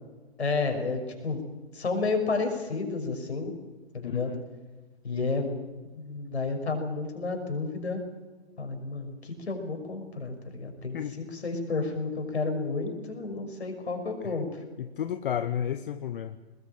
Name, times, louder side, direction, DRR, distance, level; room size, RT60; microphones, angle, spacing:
voice 1, 0.4-1.4 1.7-3.5 3.9-4.3 5.0-5.5 5.9-8.0 8.6-14.5, left 3 dB, 70° left, 5 dB, 6.0 m, -31 dB
voice 2, 4.0-4.4 10.9-11.1 14.2-14.4 14.8-16.4, left 9 dB, 50° left, 11 dB, 1.0 m, -32 dB
21.0 x 20.5 x 8.9 m, 1.3 s
figure-of-eight pair, 115°, 33 cm